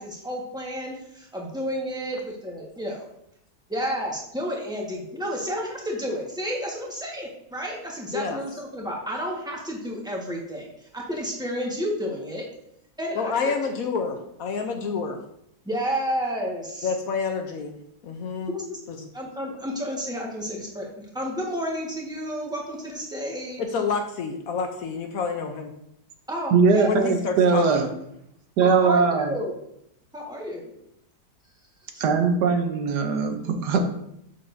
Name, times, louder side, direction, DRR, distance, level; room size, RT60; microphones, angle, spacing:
voice 1, 0.0-3.0 3.7-12.4 13.0-13.5 15.6-16.9 18.5-18.8 19.1-23.6 26.3-27.0 28.6-29.5 30.1-30.7 31.9-32.0, equal, 5° right, -3 dB, 1.2 m, -31 dB
voice 2, 13.1-15.2 16.8-17.8 18.0-18.5 18.9-19.1 23.6-25.7 26.8-27.9, left 5 dB, 65° left, 4 dB, 1.0 m, -28 dB
voice 3, 26.5-27.9 28.6-29.3 32.0-33.8, right 5 dB, 80° right, 6 dB, 1.4 m, -20 dB
7.1 x 6.6 x 2.6 m, 0.76 s
omnidirectional pair, 1.8 m